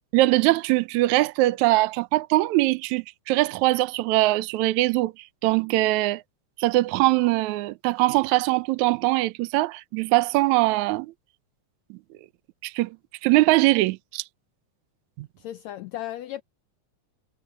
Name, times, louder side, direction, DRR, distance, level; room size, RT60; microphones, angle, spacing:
voice 1, 0.1-5.1 5.4-6.2 6.6-11.1 11.9-12.0 12.6-13.0 13.2-14.2 15.2-15.3, right 19 dB, 75° right, 2.0 m, -22 dB
voice 2, 15.4-16.4, left 13 dB, 75° left, 1.7 m, -35 dB
omnidirectional pair, 3.6 m